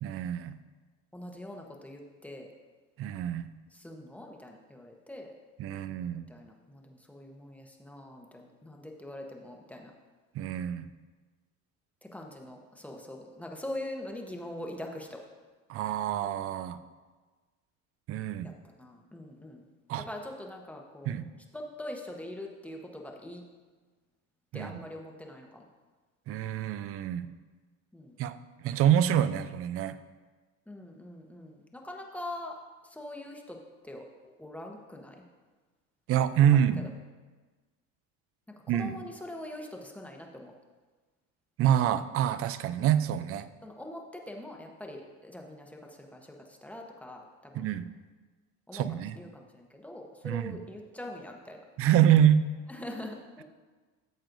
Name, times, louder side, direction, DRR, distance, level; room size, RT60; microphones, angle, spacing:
voice 1, 0.0-0.6 3.0-3.5 5.6-6.3 10.3-10.9 15.7-16.8 18.1-18.5 19.9-20.1 21.1-21.3 24.5-24.8 26.3-27.3 28.2-28.4 28.6-30.0 36.1-36.8 38.7-39.0 41.6-43.5 47.5-47.9 48.7-49.2 50.2-50.6 51.8-52.4, right 10 dB, 45° right, 13 dB, 0.5 m, -26 dB
voice 2, 1.1-2.5 3.7-5.3 5.7-9.9 12.0-15.2 18.4-18.5 18.8-19.6 20.1-21.1 21.5-23.4 24.5-25.6 27.9-28.1 30.7-32.6 32.8-35.2 36.5-36.6 38.7-40.5 43.6-47.7 48.7-51.6 52.7-53.4, left 1 dB, 5° left, 1 dB, 0.9 m, -43 dB
13.5 x 7.3 x 2.6 m, 1.3 s
cardioid pair, 135°, 32 cm